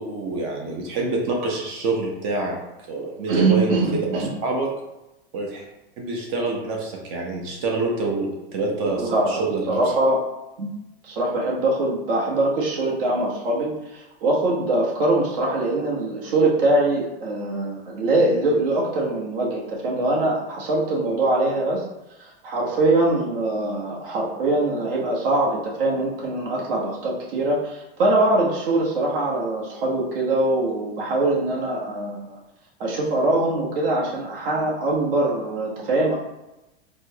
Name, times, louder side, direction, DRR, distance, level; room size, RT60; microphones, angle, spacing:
voice 1, 0.0-2.5 2.9-4.7 5.3-5.6 6.0-9.8, right 3 dB, 40° right, -1 dB, 0.8 m, -26 dB
voice 2, 3.3-4.3 8.9-10.2 10.6-10.7 11.0-21.8 22.2-32.4 32.8-36.1, right 2 dB, 60° right, -4 dB, 1.3 m, -23 dB
4.3 x 2.2 x 2.9 m, 0.97 s
supercardioid pair, 145°, 31 cm